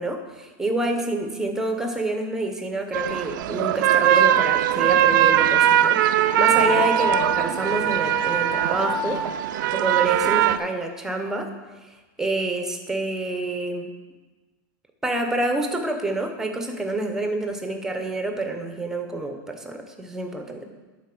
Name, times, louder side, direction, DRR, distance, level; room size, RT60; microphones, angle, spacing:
voice 1, 0.0-6.0 6.4-9.2 9.7-11.5 11.8-11.9 12.2-13.9 15.0-20.6, right 2 dB, 5° right, 5 dB, 0.8 m, -27 dB
sound 1, 2.9-10.6, right 12 dB, 75° right, 0.4 m, -20 dB
Wind instrument woodwind instrument, 6.2-10.0, left 3 dB, 35° left, 2.5 m, -31 dB
9.3 x 4.2 x 6.1 m, 1.2 s
supercardioid pair, 150°, 11 cm